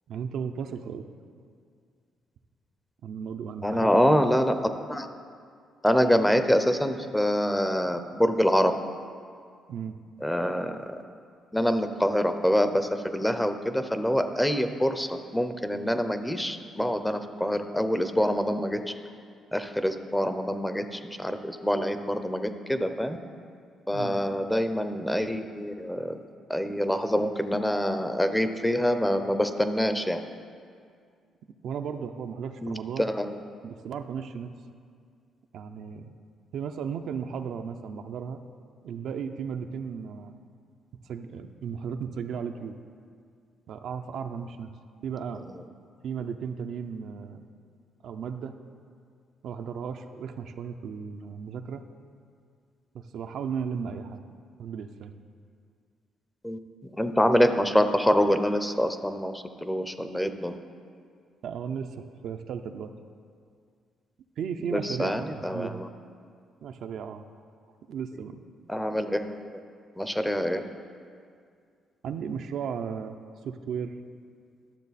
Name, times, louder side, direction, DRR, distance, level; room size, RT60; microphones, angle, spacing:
voice 1, 0.1-1.0 3.0-3.9 9.7-9.9 23.9-24.2 31.6-33.1 33.6-34.5 35.5-36.1 36.5-38.4 38.8-40.3 41.1-42.8 43.7-44.7 45.0-45.5 46.0-47.4 48.0-48.5 49.4-51.8 52.9-54.2 54.6-55.1 61.4-62.9 64.4-65.8 66.6-67.2 67.9-68.4 72.0-73.2 73.4-73.9, right 7 dB, 70° right, 6 dB, 0.5 m, -35 dB
voice 2, 3.6-4.6 4.9-5.1 5.8-8.7 10.2-10.8 11.5-18.8 19.5-23.2 23.9-26.2 26.5-30.2 32.6-33.3 56.4-60.6 64.6-65.9 68.7-69.4 70.0-70.6, equal, 5° left, 9 dB, 0.6 m, -25 dB
11.5 x 6.6 x 4.1 m, 2.2 s
cardioid pair, 90°, 0 cm